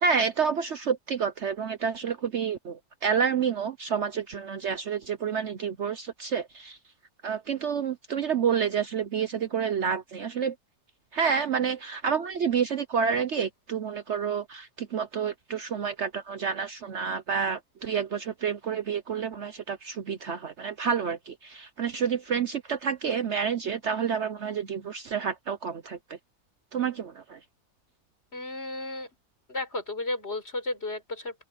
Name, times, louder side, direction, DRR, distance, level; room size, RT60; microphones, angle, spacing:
voice 1, 0.0-6.8 7.2-10.5 11.1-26.2 26.7-27.4, right 6 dB, 55° right, 1.0 m, -29 dB
voice 2, 28.3-29.1 29.5-31.4, left 2 dB, 45° left, 4.9 m, -33 dB
open air
omnidirectional pair, 1.6 m